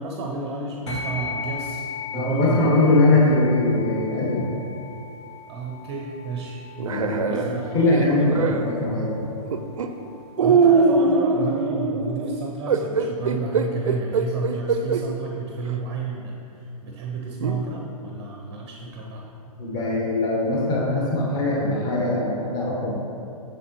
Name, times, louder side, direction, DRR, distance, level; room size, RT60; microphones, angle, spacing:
voice 1, 0.0-2.7 3.1-3.2 5.5-6.6 7.3-7.9 10.4-19.2, right 3 dB, 25° right, 0 dB, 0.7 m, -31 dB
sound 1, 0.9-10.6, left 4 dB, 45° left, 0.9 m, -37 dB
voice 2, 2.1-4.5 6.8-7.4 7.7-9.3 19.6-22.9, left 2 dB, 20° left, -5 dB, 1.2 m, -21 dB
sound 2, 6.8-8.7 9.5-9.9 10.4-15.1 15.7-15.8 17.4-17.6, right 4 dB, 60° right, 0.5 m, -22 dB
7.9 x 6.6 x 3.0 m, 2.6 s
figure-of-eight pair, 120°, 19 cm